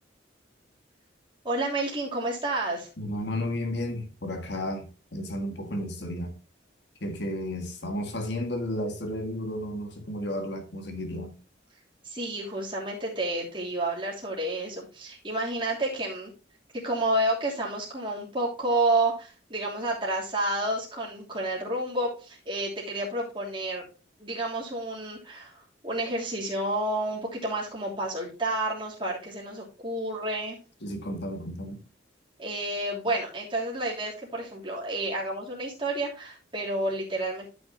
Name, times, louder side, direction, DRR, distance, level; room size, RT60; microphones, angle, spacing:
voice 1, 1.4-2.9 12.0-16.3 16.7-23.9 24.2-30.6 32.4-37.5, right 1 dB, 25° right, 3.0 m, -30 dB
voice 2, 3.0-6.4 7.0-11.3 30.8-31.9, left 1 dB, 65° left, 1.7 m, -33 dB
12.5 x 6.3 x 2.8 m
head